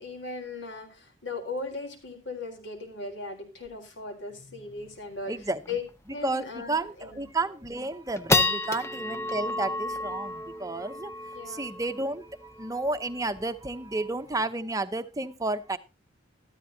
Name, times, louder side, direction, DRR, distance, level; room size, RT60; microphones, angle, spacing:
voice 1, 0.0-5.8 6.1-7.2 11.3-11.7, left 3 dB, 70° left, 4 dB, 4.3 m, -38 dB
sound 1, 4.8-4.9 5.2-5.3 5.6-5.9 6.4-6.5 7.0-7.4 7.8-14.4, left 3 dB, 15° left, 0.7 m, -31 dB
voice 2, 5.3-5.6 6.2-15.8, right 2 dB, 15° right, 9 dB, 0.9 m, -32 dB
13.5 x 13.5 x 2.8 m, 0.28 s
head